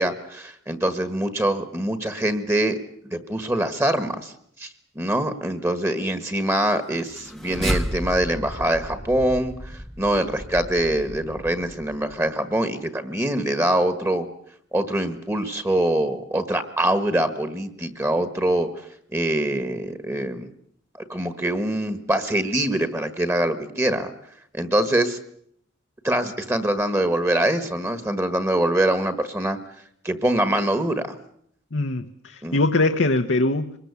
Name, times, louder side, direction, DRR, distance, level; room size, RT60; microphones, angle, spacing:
voice 1, 0.0-2.8 3.1-4.3 4.6-4.7 4.9-14.3 14.7-18.7 19.1-20.5 21.1-24.1 24.5-25.2 26.0-29.6 30.0-31.1 32.4-32.6, right 1 dB, 15° right, 11 dB, 1.5 m, -24 dB
sound 1, 7.0-12.3, equal, ahead, 0.9 m, -33 dB
voice 2, 31.7-33.8, left 2 dB, 75° left, 5 dB, 1.1 m, -22 dB
24.0 x 20.5 x 8.3 m, 0.68 s
head